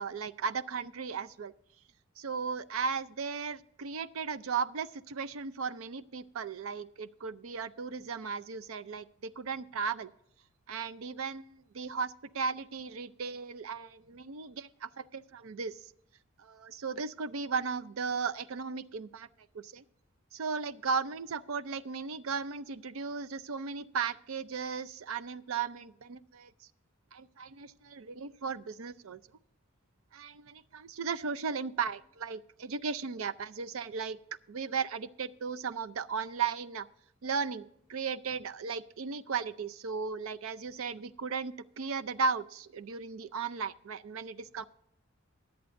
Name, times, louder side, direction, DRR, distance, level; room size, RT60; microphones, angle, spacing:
voice 1, 0.0-1.5 2.2-10.1 10.7-15.9 16.4-19.3 19.5-19.8 20.3-26.7 27.1-29.2 30.1-34.2 34.5-36.9 37.2-44.7, right 5 dB, 85° right, 15 dB, 0.5 m, -36 dB
22.5 x 8.0 x 2.6 m, 0.75 s
head